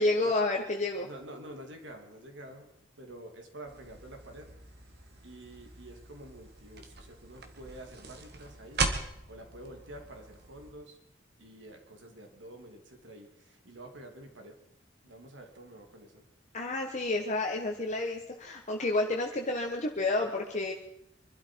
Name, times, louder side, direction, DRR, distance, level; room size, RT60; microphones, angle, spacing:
voice 1, 0.0-1.1 16.5-20.7, left 2 dB, 40° left, 1 dB, 1.4 m, -30 dB
voice 2, 1.0-2.7 3.0-4.5 5.2-8.9 9.3-11.0 11.4-14.6 15.0-16.2, right 1 dB, 75° right, 4 dB, 2.9 m, -48 dB
sound 1, 3.7-10.7, right 3 dB, 60° right, 1.8 m, -39 dB
24.5 x 12.5 x 4.7 m, 0.80 s
head